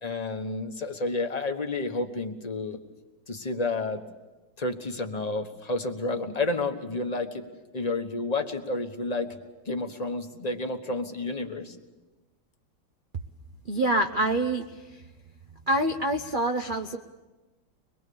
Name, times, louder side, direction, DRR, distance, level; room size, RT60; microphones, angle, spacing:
voice 1, 0.0-2.8 3.3-4.0 4.6-7.4 7.7-9.3 9.7-11.7, left 2 dB, 25° left, 5 dB, 1.1 m, -30 dB
voice 2, 13.7-14.6 14.9-15.0 15.7-17.0, right 1 dB, 60° right, 5 dB, 0.5 m, -26 dB
24.5 x 21.5 x 7.0 m, 1.1 s
omnidirectional pair, 2.2 m